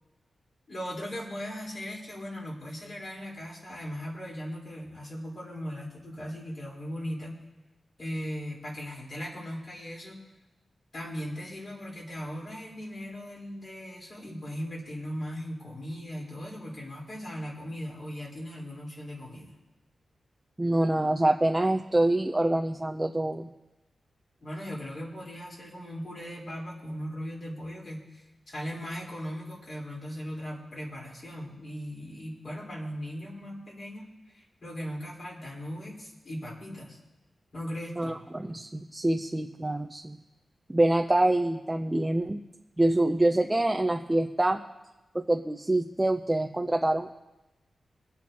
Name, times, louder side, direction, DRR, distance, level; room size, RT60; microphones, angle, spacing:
voice 1, 0.7-7.4 8.0-10.2 10.9-19.5 24.4-37.0 37.5-38.2, equal, 50° left, -4 dB, 4.0 m, -38 dB
voice 2, 20.6-23.5 38.0-40.2 40.7-42.4 42.8-44.6 45.1-47.1, right 1 dB, 15° right, 4 dB, 0.5 m, -26 dB
24.5 x 8.4 x 2.9 m, 1.0 s
wide cardioid pair, 120°, 0 cm